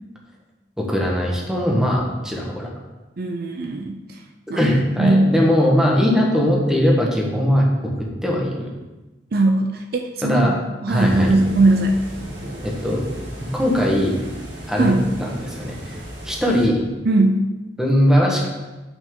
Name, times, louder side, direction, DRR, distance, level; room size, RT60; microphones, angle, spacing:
voice 1, 0.8-2.7 4.5-7.7 8.0-8.7 10.2-10.5 10.9-11.3 12.6-13.1 13.4-14.2 14.7-16.0 16.2-16.8 17.8-18.5, equal, 5° right, -2 dB, 1.2 m, -20 dB
voice 2, 3.2-4.2 4.5-4.7 5.0-5.3 9.3-10.5 10.8-12.1 14.8-15.1 17.1-17.4, right 2 dB, 55° right, 4 dB, 0.5 m, -19 dB
sound 1, 10.9-16.7, right 1 dB, 85° right, 2.4 m, -35 dB
7.7 x 6.0 x 3.7 m, 1.1 s
head